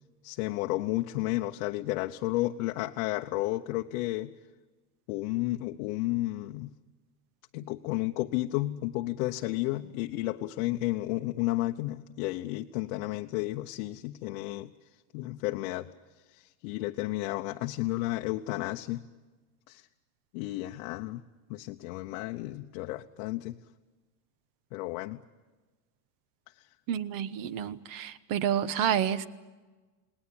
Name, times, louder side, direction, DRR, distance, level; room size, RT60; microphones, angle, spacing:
voice 1, 0.2-4.3 5.1-6.7 7.5-14.7 15.1-15.9 16.3-19.0 19.7-19.9 20.3-21.2 21.5-23.6 24.7-25.2, left 18 dB, 55° left, 4 dB, 1.0 m, -32 dB
voice 2, 26.9-29.3, right 9 dB, 40° right, 15 dB, 1.1 m, -29 dB
29.0 x 20.0 x 8.7 m, 1.3 s
supercardioid pair, 145°, 50 cm